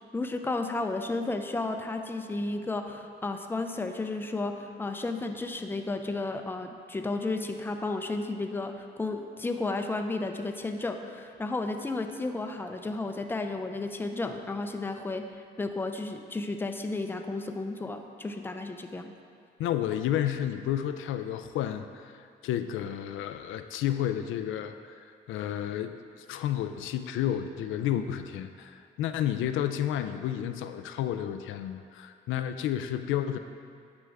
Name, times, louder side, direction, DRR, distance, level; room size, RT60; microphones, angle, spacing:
voice 1, 0.1-19.1, left 2 dB, 10° left, 5 dB, 0.5 m, -33 dB
voice 2, 19.6-33.4, left 10 dB, 85° left, 9 dB, 0.4 m, -31 dB
9.6 x 6.1 x 3.5 m, 2.3 s
cardioid pair, 90°, 20 cm